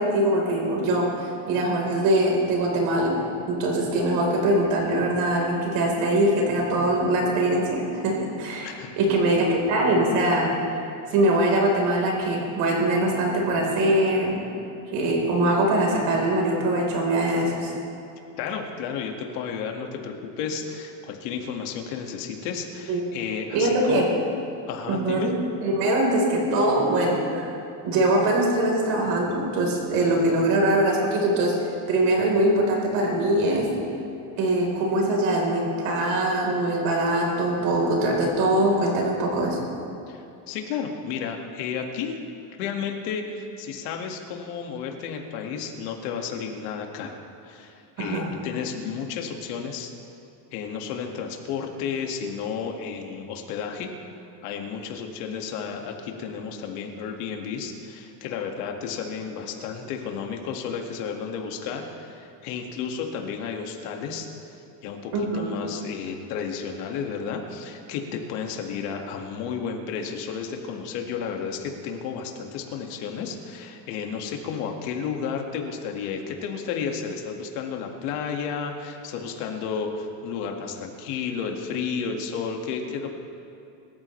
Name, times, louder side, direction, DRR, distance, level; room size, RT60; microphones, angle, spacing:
voice 1, 0.0-3.1 3.5-10.5 11.1-14.4 14.9-17.7 22.9-23.2 23.5-24.0 24.9-27.5 27.8-31.6 31.9-33.7 34.4-39.6 48.0-48.3 65.1-65.5, right 1 dB, 60° right, -1 dB, 4.3 m, -22 dB
voice 2, 8.6-9.0 18.4-24.1 24.7-25.3 40.1-42.2 42.6-47.2 47.4-49.9 50.5-53.9 54.4-64.3 64.8-83.1, left 6 dB, 85° left, 2 dB, 2.1 m, -32 dB
25.5 x 13.5 x 3.3 m, 2.8 s
cardioid pair, 175°, 45 cm